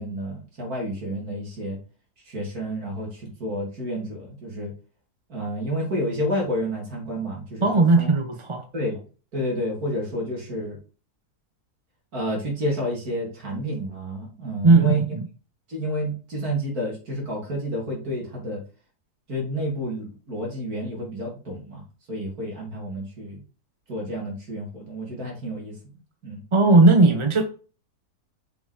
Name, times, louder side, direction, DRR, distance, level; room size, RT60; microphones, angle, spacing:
voice 1, 0.0-1.8 2.2-4.7 5.3-8.1 8.7-9.0 9.3-10.8 12.1-15.0 15.7-18.6 19.3-21.8 22.1-23.4 23.9-25.8 26.2-26.4, equal, 70° right, 3.3 m, -30 dB
voice 2, 7.6-8.6 14.6-15.3 26.5-27.4, right 3 dB, 30° right, 0.6 m, -17 dB
6.8 x 5.4 x 5.1 m
omnidirectional pair, 1.7 m